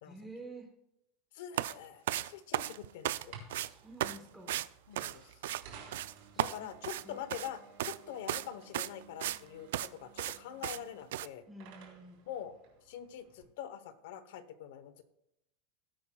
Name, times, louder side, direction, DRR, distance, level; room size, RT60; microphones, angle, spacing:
voice 1, 0.0-0.7 3.6-4.6 6.3-6.7 7.0-7.2 11.5-12.2, right 2 dB, ahead, -1 dB, 1.0 m, -49 dB
voice 2, 1.3-3.3 4.9-5.2 6.4-11.4 12.3-12.5 12.9-15.0, left 9 dB, 65° left, 13 dB, 0.9 m, -44 dB
sound 1, 1.5-1.7 2.1-3.2 3.5-3.7 4.0-4.2 4.5-4.7 5.0-5.6 5.9-6.1 6.4-7.5 7.8-8.0 8.3-8.5 8.7-9.4 9.7-9.9 10.2-10.4 10.6-10.8 11.1-11.3, right 13 dB, 85° right, 0.3 m, -35 dB
sound 2, 3.1-13.4, right 6 dB, 50° right, 3.8 m, -56 dB
18.5 x 8.6 x 2.3 m, 0.83 s
supercardioid pair, 175°, 0 cm